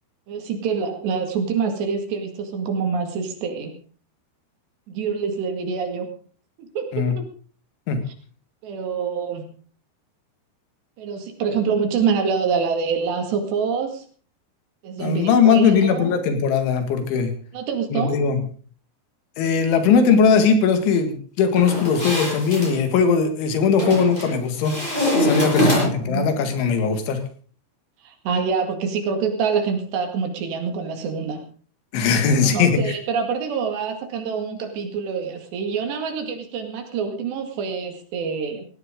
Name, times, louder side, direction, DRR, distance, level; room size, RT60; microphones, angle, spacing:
voice 1, 0.3-3.7 4.9-6.1 6.8-7.2 8.6-9.4 11.0-14.1 14.8-16.2 17.5-18.2 25.5-26.3 28.0-31.5 32.4-38.7, right 6 dB, 65° right, 5 dB, 4.1 m, -26 dB
voice 2, 15.0-17.3 17.9-18.4 19.4-24.8 25.2-27.2 31.9-32.9, left 6 dB, 80° left, 7 dB, 4.4 m, -19 dB
sound 1, 21.6-22.7 23.8-24.3 24.6-26.1, left 1 dB, 10° left, 7.6 m, -23 dB
17.5 x 17.5 x 3.8 m, 0.41 s
omnidirectional pair, 5.4 m